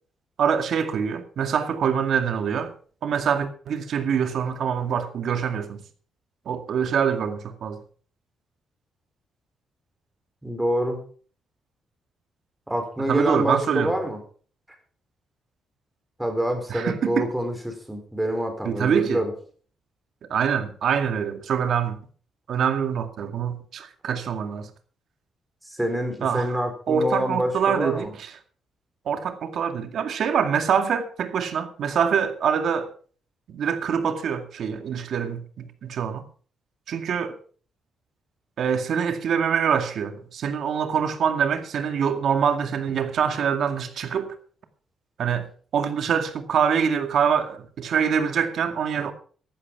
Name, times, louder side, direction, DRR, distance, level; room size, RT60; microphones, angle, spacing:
voice 1, 0.4-2.7 3.0-5.8 6.5-7.8 13.1-13.9 16.7-17.3 18.7-19.2 20.3-22.0 22.5-24.7 26.2-26.5 26.9-28.3 29.1-32.9 33.5-36.3 36.9-37.3 38.6-44.3 45.2-45.5 45.7-49.1, right 7 dB, 60° right, 2.1 m, -25 dB
voice 2, 10.4-11.0 12.7-14.2 16.2-19.3 25.6-28.1, equal, 5° right, 4.4 m, -26 dB
15.0 x 11.5 x 4.8 m
cardioid pair, 130°, 0 cm